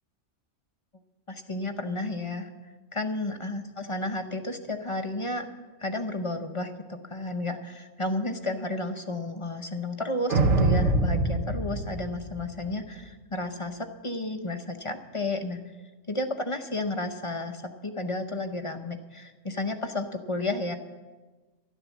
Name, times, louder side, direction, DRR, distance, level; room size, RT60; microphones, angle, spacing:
voice 1, 1.3-2.5 2.9-5.5 5.8-15.6 16.1-20.8, left 2 dB, 30° left, 6 dB, 0.7 m, -32 dB
sound 1, 10.3-12.8, right 2 dB, 65° right, 1.3 m, -24 dB
12.5 x 11.5 x 7.3 m, 1.3 s
omnidirectional pair, 1.4 m